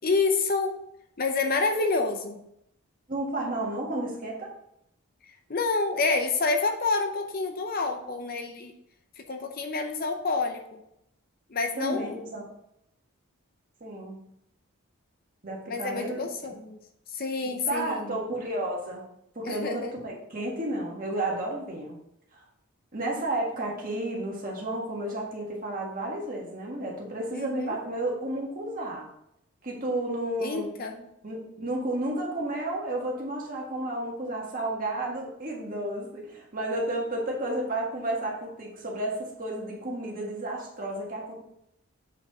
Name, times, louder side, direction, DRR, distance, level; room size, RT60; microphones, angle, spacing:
voice 1, 0.0-0.7 1.2-2.4 5.5-8.7 9.3-10.8 11.5-12.2 15.7-16.8 17.1-18.2 19.4-19.9 27.3-27.8 30.4-31.1, left 3 dB, 40° left, 5 dB, 0.6 m, -28 dB
voice 2, 3.1-4.5 11.7-12.4 13.8-14.2 15.4-16.5 17.7-19.0 19.3-22.0 22.3-22.4 22.9-29.1 29.6-30.7 31.2-41.3, right 1 dB, 40° right, -1 dB, 1.7 m, -32 dB
7.3 x 4.6 x 4.1 m, 0.79 s
head